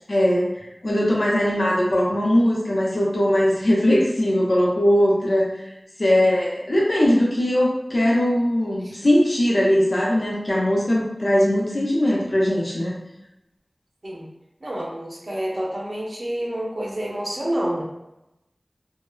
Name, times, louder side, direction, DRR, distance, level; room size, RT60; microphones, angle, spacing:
voice 1, 0.1-0.5 0.8-5.5 6.0-13.0, equal, 85° left, -4 dB, 0.7 m, -20 dB
voice 2, 6.1-6.4 8.8-8.9 14.0-14.3 14.6-17.8, right 1 dB, 70° right, -3 dB, 0.6 m, -29 dB
2.7 x 2.1 x 2.3 m, 0.91 s
wide cardioid pair, 40°, 0 cm